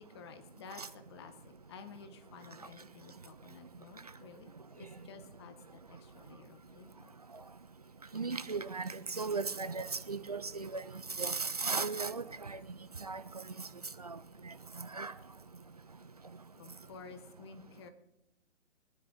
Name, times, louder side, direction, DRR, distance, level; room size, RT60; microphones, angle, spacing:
voice 1, 0.0-7.2 16.5-17.9, left 5 dB, 20° left, 0.8 m, -53 dB
voice 2, 8.1-10.8 11.2-12.6 13.0-13.2 14.0-14.2 14.9-15.1, right 4 dB, 35° right, 0.4 m, -36 dB
20.0 x 9.9 x 3.8 m
figure-of-eight pair, 140°, 37 cm